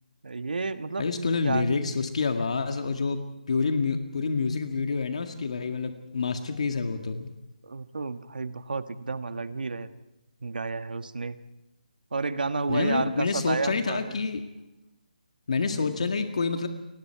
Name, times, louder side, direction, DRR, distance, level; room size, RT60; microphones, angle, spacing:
voice 1, 0.2-1.8 7.6-9.9 10.4-11.4 12.1-14.2 15.7-15.9, right 4 dB, 80° right, 9 dB, 1.5 m, -31 dB
voice 2, 1.0-7.3 12.7-14.4 15.5-16.7, left 4 dB, 45° left, 5 dB, 1.9 m, -28 dB
30.0 x 23.0 x 4.7 m, 0.94 s
hypercardioid pair, 175°, 5 cm